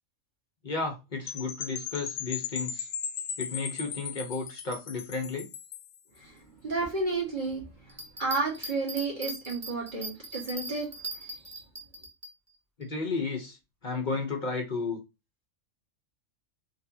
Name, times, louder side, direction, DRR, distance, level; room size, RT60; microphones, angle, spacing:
voice 1, 0.6-2.9 3.4-5.5 12.8-13.6 13.8-15.0, left 4 dB, 40° left, 1.0 m, -33 dB
Percussion / Wind chime, 1.3-6.0, left 8 dB, 90° left, 1.0 m, -37 dB
voice 2, 6.6-10.9, right 3 dB, 40° right, 1.9 m, -32 dB
Bell, 7.9-12.3 12.8-12.9, right 2 dB, 15° right, 0.6 m, -39 dB
4.4 x 3.0 x 2.8 m
omnidirectional pair, 1.3 m